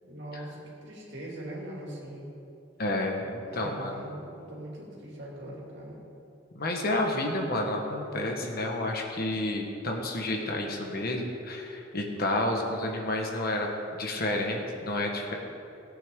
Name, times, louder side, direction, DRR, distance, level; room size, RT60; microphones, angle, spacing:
voice 1, 0.0-2.2 3.5-6.0, right 1 dB, 65° right, -4 dB, 2.9 m, -41 dB
voice 2, 2.8-3.9 6.5-15.3, left 1 dB, 50° left, 1 dB, 1.5 m, -30 dB
17.5 x 8.7 x 3.8 m, 2.7 s
head